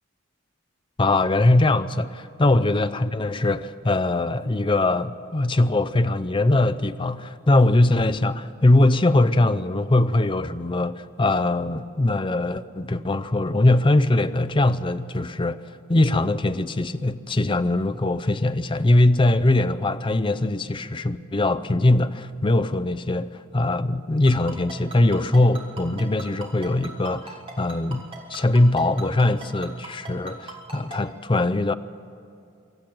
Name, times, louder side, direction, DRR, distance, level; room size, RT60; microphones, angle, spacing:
voice 1, 1.0-15.6 15.9-31.7, left 2 dB, 25° left, 12 dB, 0.5 m, -21 dB
Ringtone, 24.3-31.0, right 3 dB, 30° right, 3.5 m, -38 dB
24.5 x 13.5 x 9.0 m, 2.5 s
head